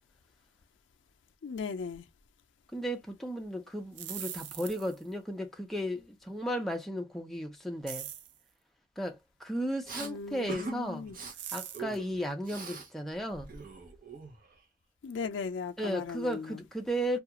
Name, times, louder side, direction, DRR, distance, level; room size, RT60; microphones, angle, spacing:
voice 1, 1.4-2.1 10.0-11.2 15.0-16.6, left 5 dB, 90° left, 0.4 m, -37 dB
voice 2, 2.7-8.1 9.0-11.1 11.5-13.5 15.8-17.2, equal, ahead, 0.6 m, -35 dB
sound 1, 3.8-5.1 7.9-8.4 11.3-12.0, right 10 dB, 75° right, 0.4 m, -41 dB
Respiratory sounds, 9.9-10.1 10.5-10.8 11.1-11.3 11.7-12.9 13.2-14.6, right 5 dB, 50° right, 0.8 m, -42 dB
2.3 x 2.3 x 2.8 m
head